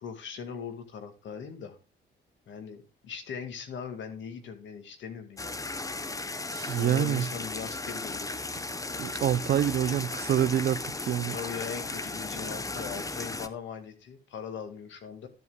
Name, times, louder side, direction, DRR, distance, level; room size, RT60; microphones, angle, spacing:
voice 1, 0.0-1.8 2.5-5.4 6.7-8.5 11.3-15.3, left 6 dB, 70° left, 1.9 m, -40 dB
sound 1, 5.4-13.5, left 2 dB, 15° left, 0.8 m, -36 dB
voice 2, 6.5-7.3 9.0-11.4, right 11 dB, 55° right, 0.5 m, -27 dB
12.5 x 8.1 x 2.2 m
cardioid pair, 90°, 20 cm